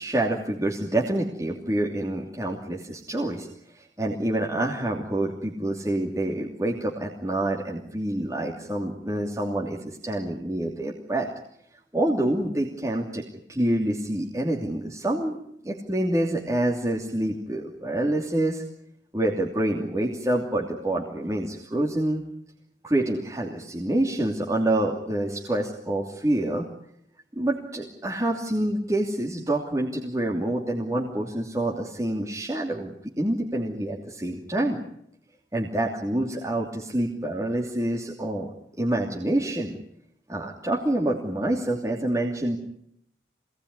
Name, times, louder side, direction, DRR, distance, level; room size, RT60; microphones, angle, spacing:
voice 1, 0.0-3.5 3.7-11.3 11.9-13.2 13.5-15.4 15.6-18.6 19.1-22.2 22.8-26.7 27.3-34.8 35.5-39.8 40.3-42.6, right 1 dB, 15° right, -2 dB, 2.9 m, -27 dB
25.5 x 19.0 x 9.7 m, 0.72 s
head